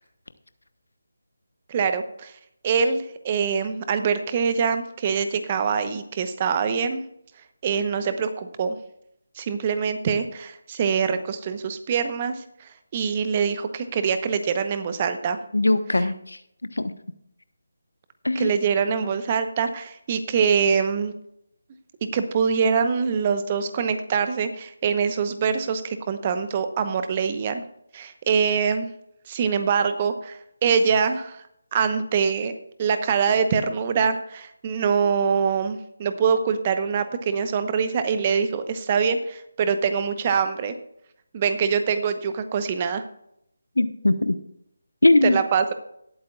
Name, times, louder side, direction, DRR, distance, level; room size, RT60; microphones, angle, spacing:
voice 1, 1.7-2.3 2.6-7.0 7.6-8.8 9.4-12.4 12.9-15.4 18.3-21.1 22.1-27.6 27.9-28.9 29.3-31.4 31.7-40.7 41.3-43.0 45.2-45.7, right 6 dB, 30° right, 10 dB, 0.9 m, -24 dB
voice 2, 15.5-16.4 16.8-16.9 18.2-18.5 43.8-44.4 45.0-45.4, left 2 dB, 80° left, 11 dB, 1.0 m, -20 dB
19.0 x 8.6 x 2.4 m, 0.75 s
figure-of-eight pair, 155°, 0 cm